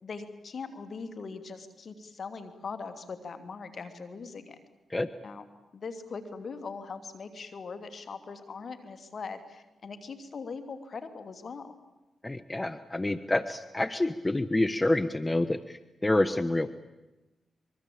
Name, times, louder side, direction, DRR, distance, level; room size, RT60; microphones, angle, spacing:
voice 1, 0.0-4.6 5.2-5.4 5.7-11.8, left 4 dB, 60° left, 11 dB, 2.9 m, -41 dB
voice 2, 12.2-16.7, left 2 dB, 20° left, 12 dB, 1.2 m, -28 dB
25.0 x 22.5 x 8.7 m, 1.0 s
supercardioid pair, 45°, 0 cm